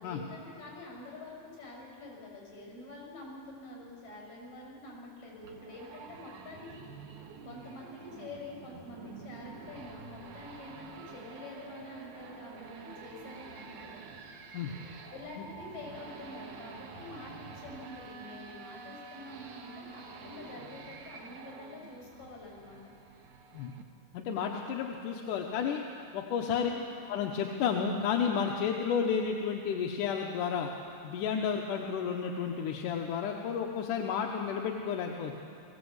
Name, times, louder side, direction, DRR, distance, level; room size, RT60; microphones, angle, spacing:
voice 1, 0.0-6.8 7.4-13.9 15.1-22.9 26.6-27.0, left 2 dB, 50° left, -1 dB, 7.4 m, -47 dB
sound 1, 5.4-23.8, right 5 dB, 60° right, 2.5 m, -48 dB
voice 2, 24.1-25.8 26.1-26.7 27.1-30.7 31.0-35.3, left 7 dB, 70° left, 2 dB, 2.3 m, -31 dB
20.5 x 16.5 x 8.0 m, 2.4 s
omnidirectional pair, 4.2 m